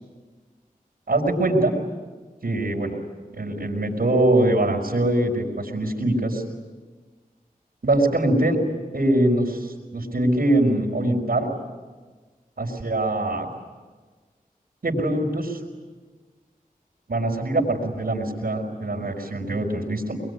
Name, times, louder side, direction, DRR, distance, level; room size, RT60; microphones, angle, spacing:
voice 1, 1.1-1.7 2.4-3.0 3.3-6.4 7.8-8.6 8.9-11.5 12.6-13.5 14.8-15.6 17.1-20.2, right 1 dB, 80° right, -5 dB, 4.9 m, -23 dB
25.0 x 22.5 x 9.9 m, 1.3 s
wide cardioid pair, 65°, 15 cm